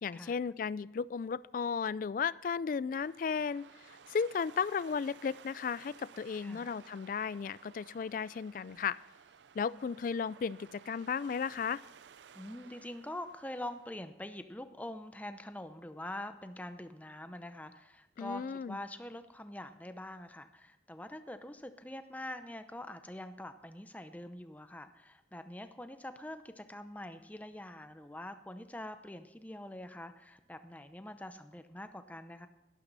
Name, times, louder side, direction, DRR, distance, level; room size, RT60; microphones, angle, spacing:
voice 1, 0.0-9.0 9.5-11.8 18.2-18.8, left 6 dB, 50° left, 20 dB, 0.3 m, -35 dB
sound 1, 2.9-14.1, right 7 dB, 85° right, 0.5 m, -57 dB
voice 2, 6.4-6.7 12.3-32.5, left 1 dB, 10° left, 9 dB, 0.7 m, -45 dB
12.0 x 12.0 x 4.0 m, 1.0 s
head